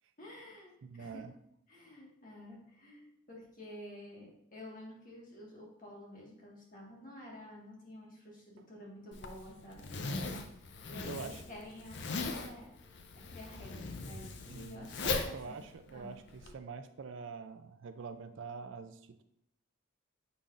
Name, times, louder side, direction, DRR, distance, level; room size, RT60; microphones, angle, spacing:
voice 1, 0.2-1.2 1.7-9.9 10.8-12.7 13.1-15.6 15.9-16.1, left 1 dB, 40° left, -3 dB, 1.6 m, -50 dB
voice 2, 0.8-1.3 11.0-11.4 14.5-19.2, right 5 dB, 60° right, 10 dB, 0.4 m, -45 dB
Zipper (clothing), 9.1-16.5, left 3 dB, 55° left, 0.5 m, -39 dB
6.8 x 5.5 x 2.5 m, 0.78 s
head